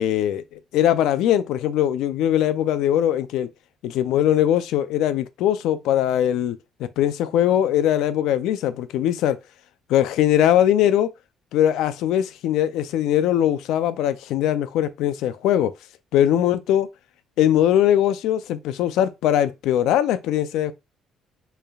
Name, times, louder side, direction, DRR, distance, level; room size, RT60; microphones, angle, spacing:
voice 1, 0.0-3.5 3.8-9.4 9.9-11.1 11.5-15.7 16.1-16.9 17.4-20.7, left 11 dB, 80° left, 0.3 m, -21 dB
4.5 x 3.2 x 2.3 m
cardioid pair, 105°, 0 cm